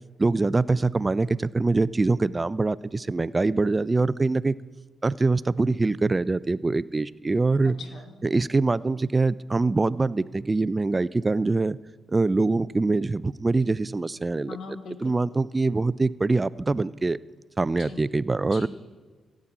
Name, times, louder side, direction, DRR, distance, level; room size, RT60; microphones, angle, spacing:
voice 1, 0.2-4.6 5.0-7.8 8.2-11.8 12.1-14.6 15.0-17.2 17.6-18.7, right 3 dB, 30° right, 19 dB, 0.3 m, -24 dB
voice 2, 7.6-8.1 14.4-15.2 17.8-18.0 18.5-18.7, left 5 dB, 70° left, 7 dB, 1.2 m, -41 dB
16.0 x 7.4 x 4.9 m, 1.4 s
supercardioid pair, 55°, 0 cm